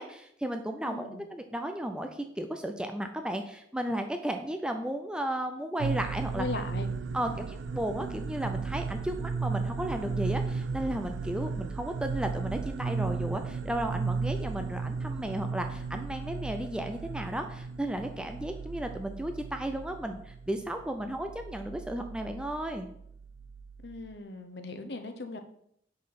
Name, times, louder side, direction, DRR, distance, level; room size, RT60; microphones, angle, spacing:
voice 1, 0.0-6.5 7.1-22.9, right 1 dB, 5° right, 5 dB, 0.4 m, -34 dB
voice 2, 0.8-1.3 6.3-6.9 7.2-7.5 23.8-25.4, left 3 dB, 60° left, 7 dB, 0.7 m, -38 dB
sound 1, 5.8-24.2, right 4 dB, 80° right, 0.4 m, -35 dB
5.2 x 4.2 x 5.7 m, 0.70 s
head